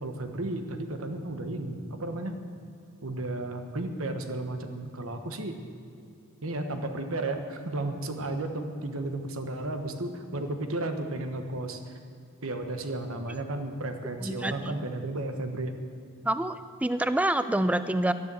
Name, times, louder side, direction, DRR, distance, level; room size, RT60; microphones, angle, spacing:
voice 1, 0.0-2.3 3.0-5.6 6.4-11.9 12.4-15.7, right 2 dB, 70° right, 6 dB, 1.2 m, -33 dB
voice 2, 14.2-14.8 16.2-18.1, right 1 dB, 5° right, 12 dB, 0.4 m, -27 dB
12.5 x 10.5 x 7.6 m, 2.4 s
head